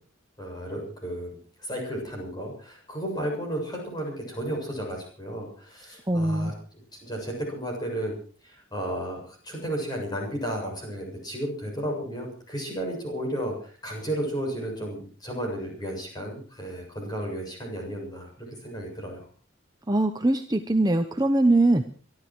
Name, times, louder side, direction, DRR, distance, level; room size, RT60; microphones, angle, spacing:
voice 1, 0.4-6.5 7.0-8.1 8.4-19.2, right 1 dB, 20° left, 0 dB, 7.3 m, -33 dB
voice 2, 6.1-6.5 19.9-21.8, right 2 dB, 20° right, 7 dB, 0.8 m, -22 dB
24.0 x 12.5 x 4.7 m, 0.42 s
head